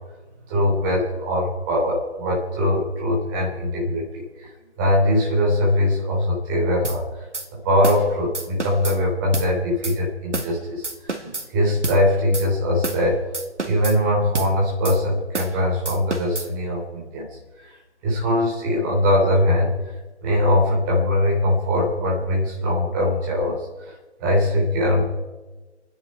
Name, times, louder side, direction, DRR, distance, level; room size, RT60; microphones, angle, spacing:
voice 1, 0.5-4.5 4.8-7.3 7.5-13.2 13.6-17.8 18.0-25.0, left 1 dB, 15° right, -3 dB, 3.3 m, -22 dB
sound 1, 6.8-7.0 7.3-7.5 7.8-8.0 8.3-9.0 9.3-9.5 9.8-10.0 10.3-10.5 10.8-11.5 11.8-12.0 12.3-12.5 12.8-13.0 13.3-14.0 14.3-14.5 14.8-15.0 15.3-15.6 15.9-16.5, right 2 dB, 85° right, 2.3 m, -29 dB
29.5 x 10.0 x 4.7 m, 1.2 s
figure-of-eight pair, 155°, 35 cm